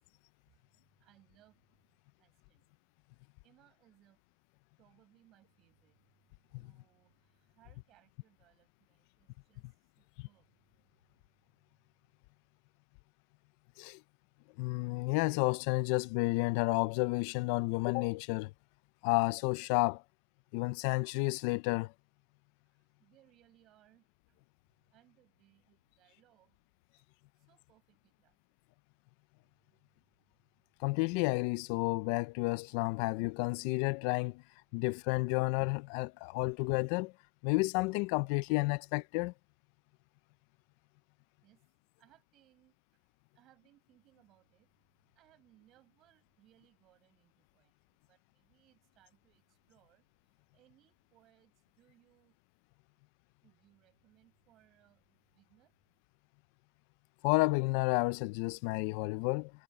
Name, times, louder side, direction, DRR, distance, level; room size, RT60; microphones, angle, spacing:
voice 1, 1.0-1.6 2.2-2.7 3.4-4.2 4.8-6.0 6.6-7.2 7.5-9.6 10.0-10.6 23.0-24.4 24.9-26.6 27.5-28.3 41.4-41.6 42.0-42.7 43.3-44.7 45.2-50.0 50.5-52.4 53.4-55.0 55.3-55.7, right 15 dB, 40° right, 7.6 m, -67 dB
voice 2, 14.6-18.5 19.0-20.0 20.5-21.9 30.8-34.4 34.7-37.1 37.4-39.3 57.2-59.5, left 24 dB, 65° left, 0.3 m, -31 dB
cardioid pair, 170°, 0 cm